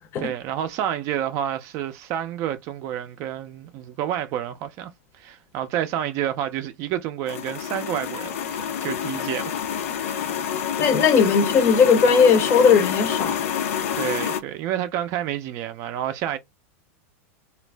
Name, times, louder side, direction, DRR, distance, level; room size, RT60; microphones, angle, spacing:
voice 1, 0.2-9.6 9.9-10.3 13.9-16.4, right 11 dB, 40° right, 0.4 m, -29 dB
sound 1, 7.3-14.4, left 8 dB, 75° left, 0.6 m, -27 dB
voice 2, 10.8-13.4, left 6 dB, 30° left, 0.6 m, -17 dB
2.4 x 2.0 x 3.2 m
supercardioid pair, 155°, 8 cm